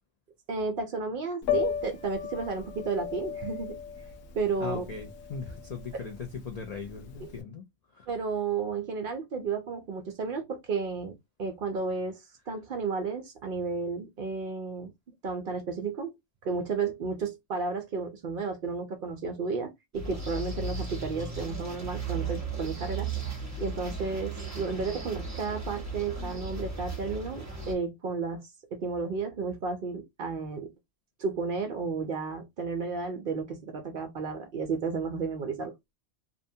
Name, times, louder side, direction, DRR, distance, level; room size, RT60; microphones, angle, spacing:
voice 1, 0.5-3.8 4.3-4.8 5.9-6.0 7.2-7.3 8.1-14.9 15.2-16.1 16.4-23.1 23.6-30.7 31.2-35.7, right 4 dB, 60° right, 0.6 m, -33 dB
Piano, 1.4-7.4, left 8 dB, 85° left, 1.0 m, -35 dB
voice 2, 4.6-7.6 7.9-8.1, left 5 dB, 65° left, 0.4 m, -39 dB
sound 1, 19.9-27.7, right 4 dB, 15° right, 0.8 m, -36 dB
2.6 x 2.2 x 2.6 m
omnidirectional pair, 1.3 m